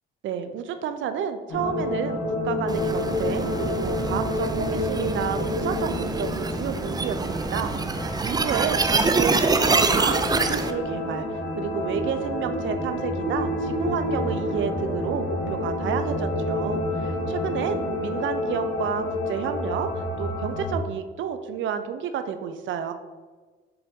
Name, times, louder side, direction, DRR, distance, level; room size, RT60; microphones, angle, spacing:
voice 1, 0.2-2.2 2.4-11.3 11.6-19.9 20.2-22.9, right 8 dB, 75° right, 9 dB, 0.6 m, -30 dB
sound 1, 1.5-20.7, left 2 dB, 85° left, 1.2 m, -29 dB
sound 2, 2.7-10.7, right 3 dB, 20° right, 0.4 m, -25 dB
6.8 x 4.0 x 3.7 m, 1.4 s
cardioid pair, 90°, 20 cm